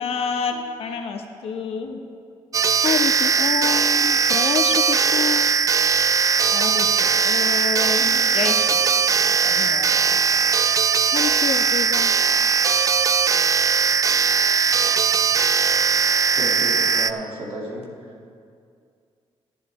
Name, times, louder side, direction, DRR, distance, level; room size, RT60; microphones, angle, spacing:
voice 1, 0.0-2.0 6.5-8.8 9.1-10.2, left 5 dB, 75° left, 4 dB, 1.1 m, -30 dB
sound 1, 2.5-17.1, right 6 dB, 35° right, 0.3 m, -19 dB
voice 2, 2.8-5.6 11.1-12.1, left 8 dB, 55° left, 13 dB, 0.4 m, -27 dB
voice 3, 16.3-17.8, right 1 dB, 80° right, -3 dB, 2.3 m, -33 dB
14.5 x 10.5 x 3.3 m, 2.3 s
cardioid pair, 105°, 10 cm